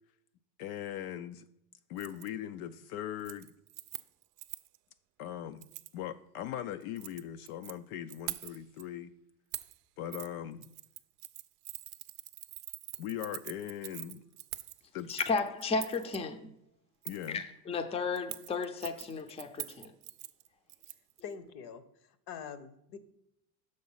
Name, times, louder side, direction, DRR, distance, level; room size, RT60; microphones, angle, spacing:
voice 1, 0.6-1.5 1.9-3.5 5.2-5.7 5.9-9.1 10.0-10.7 13.0-14.2 14.9-15.1 17.0-17.4, left 11 dB, 65° left, 0.5 m, -40 dB
Keys jangling, 2.0-2.3 2.6-2.9 3.2-4.8 5.6-5.9 6.8-7.7 8.1-8.8 9.5-9.8 10.1-10.3 10.6-16.2 17.0-17.3 18.2-21.2 21.5-21.6, right 19 dB, 75° right, 0.5 m, -44 dB
voice 2, 15.1-16.4 17.3-19.9, left 4 dB, 15° left, 0.5 m, -33 dB
voice 3, 21.2-23.0, left 7 dB, 50° left, 0.9 m, -45 dB
6.5 x 3.9 x 5.5 m
hypercardioid pair, 95°, 47 cm